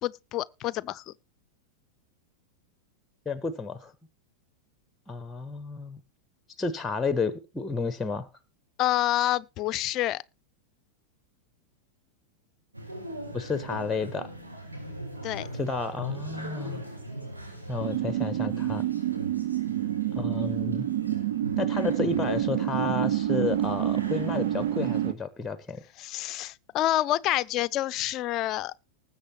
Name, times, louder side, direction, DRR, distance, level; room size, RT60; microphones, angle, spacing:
voice 1, 0.0-1.0 8.8-10.2 15.2-15.5 26.0-28.7, left 14 dB, 35° left, 0.6 m, -28 dB
voice 2, 3.2-3.9 5.1-6.0 6.6-8.3 13.3-14.3 15.5-16.8 17.7-18.8 20.1-20.9 21.6-25.8, left 4 dB, 10° left, 1.2 m, -31 dB
sound 1, 12.7-25.1, right 1 dB, 80° right, 4.8 m, -40 dB
sound 2, 17.8-25.1, right 13 dB, 60° right, 0.9 m, -28 dB
20.0 x 7.8 x 2.9 m
figure-of-eight pair, 90°, 0 cm